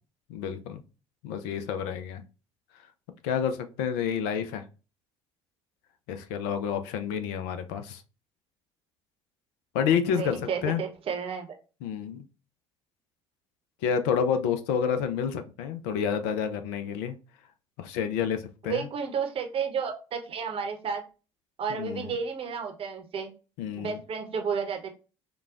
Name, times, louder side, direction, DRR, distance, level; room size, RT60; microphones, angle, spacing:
voice 1, 0.3-0.8 1.2-2.2 3.2-4.6 6.1-8.0 9.7-10.8 11.8-12.2 13.8-17.2 17.8-18.9 21.8-22.1 23.6-24.0, left 7 dB, 60° left, 9 dB, 0.5 m, -29 dB
voice 2, 10.1-11.5 18.7-21.0 21.6-23.3 23.8-24.9, right 6 dB, 40° right, 4 dB, 0.8 m, -32 dB
4.8 x 2.2 x 2.4 m, 0.33 s
figure-of-eight pair, 60°, 15 cm